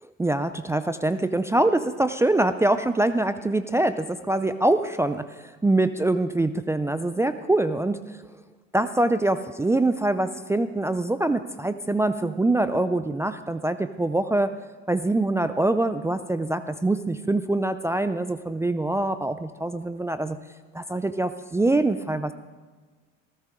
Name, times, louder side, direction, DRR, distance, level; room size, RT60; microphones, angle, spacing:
voice 1, 0.2-8.2 8.7-14.5 14.9-20.4 20.7-22.3, right 2 dB, 5° right, 10 dB, 0.4 m, -24 dB
18.5 x 14.5 x 3.7 m, 1.4 s
hypercardioid pair, 95°, 39 cm